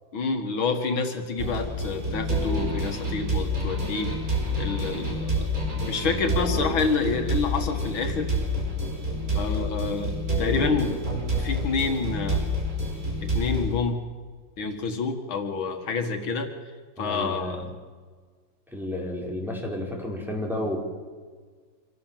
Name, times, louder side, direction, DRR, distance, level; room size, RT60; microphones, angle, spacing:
voice 1, 0.1-4.1 4.6-5.5 5.9-8.3 9.3-11.0 11.4-12.5 13.2-14.0 14.6-16.5 17.0-17.7, left 4 dB, 85° left, 5 dB, 2.6 m, -28 dB
sound 1, 1.4-13.7, equal, 45° right, 5.3 m, -28 dB
voice 2, 17.0-17.7 18.7-20.8, left 1 dB, ahead, -2 dB, 4.8 m, -31 dB
26.0 x 17.5 x 7.6 m, 1.5 s
omnidirectional pair, 2.2 m